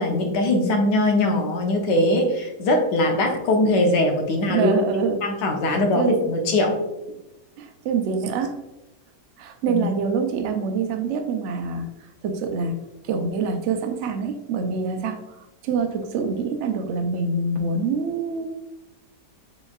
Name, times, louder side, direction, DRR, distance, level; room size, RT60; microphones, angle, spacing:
voice 1, 0.0-4.7 5.2-6.8 9.7-9.8, left 1 dB, 85° left, 3 dB, 1.5 m, -21 dB
voice 2, 4.5-5.2 5.6-6.2 7.6-8.6 9.4-11.9 12.2-12.8 13.0-15.2 15.6-18.5, right 4 dB, 65° right, 5 dB, 0.7 m, -25 dB
6.9 x 3.1 x 2.3 m, 0.94 s
omnidirectional pair, 1.8 m